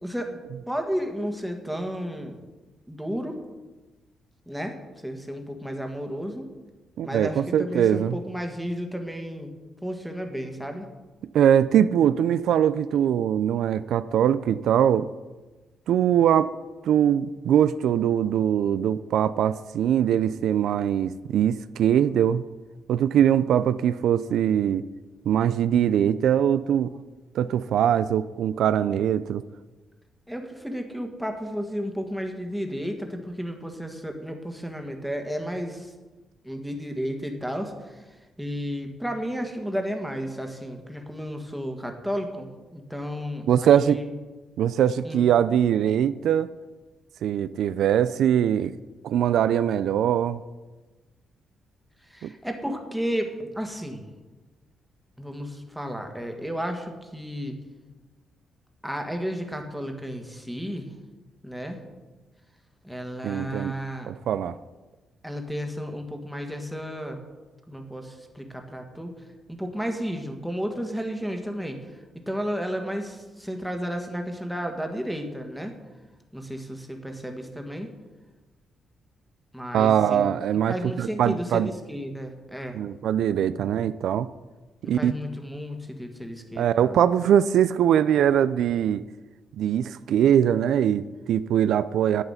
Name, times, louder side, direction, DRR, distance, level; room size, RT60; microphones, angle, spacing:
voice 1, 0.0-2.4 2.9-3.4 4.5-4.7 5.0-6.4 7.0-9.5 9.8-10.9 30.3-35.9 36.4-44.1 45.0-45.2 52.0-54.1 55.2-57.6 58.8-60.9 61.4-61.8 62.8-64.1 65.2-67.2 67.7-69.1 69.5-75.7 76.3-77.9 79.5-82.8 84.8-87.0, equal, ahead, 3 dB, 1.6 m, -33 dB
voice 2, 7.0-8.2 11.3-15.1 15.9-16.5 16.8-22.4 22.9-24.8 25.3-26.9 27.3-29.4 43.5-44.0 44.6-46.5 47.2-48.8 49.0-50.4 52.2-52.3 63.2-63.7 64.1-64.6 79.7-81.7 82.7-84.3 84.8-85.1 86.6-89.0 89.6-92.2, right 9 dB, 80° right, 14 dB, 0.3 m, -22 dB
11.0 x 8.2 x 5.7 m, 1.2 s
cardioid pair, 110°, 0 cm